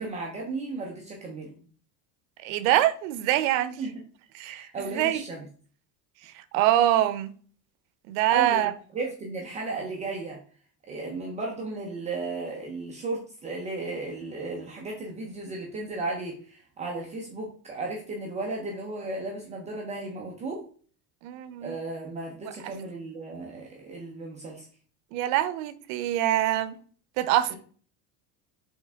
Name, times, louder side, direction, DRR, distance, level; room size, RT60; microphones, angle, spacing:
voice 1, 0.0-1.6 3.8-3.9 4.4-5.5 8.3-10.4 10.9-20.6 21.6-24.7 27.5-27.6, right 3 dB, 20° right, 0.5 m, -35 dB
voice 2, 2.4-3.8 4.3-5.2 6.3-7.3 8.1-8.7 21.2-21.8 25.1-26.7 27.2-27.5, right 13 dB, 85° right, 0.6 m, -24 dB
4.5 x 3.4 x 3.4 m
cardioid pair, 180°, 39 cm